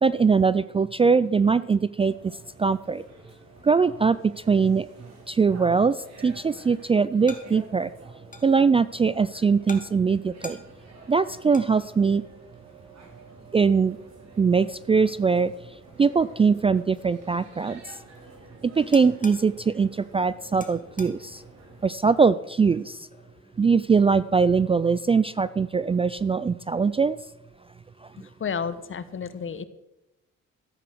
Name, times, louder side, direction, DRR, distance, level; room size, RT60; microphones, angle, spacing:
voice 1, 0.0-2.1 2.6-3.0 3.6-4.9 5.3-7.9 8.4-10.6 11.1-12.2 13.5-14.0 14.4-15.5 16.0-18.0 18.6-21.4 21.8-23.1 23.6-27.2, right 5 dB, 20° right, 16 dB, 0.3 m, -22 dB
sound 1, 2.0-22.0, right 3 dB, 60° right, 4.7 m, -49 dB
sound 2, 7.2-24.3, left 3 dB, 25° left, 2.0 m, -51 dB
voice 2, 28.2-29.6, left 6 dB, 45° left, 13 dB, 1.1 m, -32 dB
13.5 x 8.4 x 6.1 m, 0.94 s
cardioid pair, 90°, 30 cm